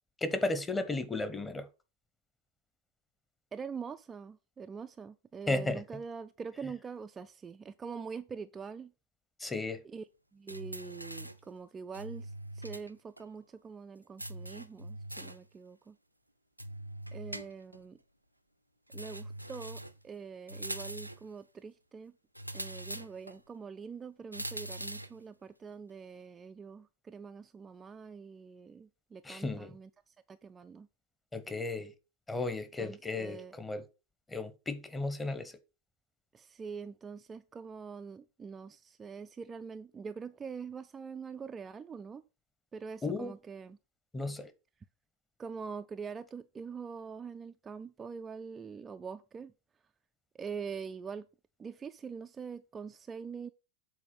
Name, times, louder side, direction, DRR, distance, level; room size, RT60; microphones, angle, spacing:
voice 1, 0.2-1.7 5.5-5.8 9.4-9.8 29.2-29.7 31.3-31.9 32.3-33.8 34.3-35.6 43.0-43.3 44.1-44.5, left 2 dB, 10° left, 1.0 m, -34 dB
voice 2, 3.5-8.9 9.8-10.0 10.3-16.0 17.1-18.0 18.9-22.1 22.5-30.9 32.8-33.5 36.3-42.2 42.7-43.8 45.4-49.5 50.3-51.3 51.6-53.5, right 5 dB, 20° right, 0.4 m, -44 dB
sound 1, 10.5-11.5 11.9-12.9 13.2-13.3 14.2-15.5 16.6-17.8 18.9-20.0 20.5-21.3 22.3-23.4 24.3-25.2, right 1 dB, 90° right, 0.5 m, -42 dB
7.6 x 4.2 x 5.7 m
figure-of-eight pair, 90°, 0 cm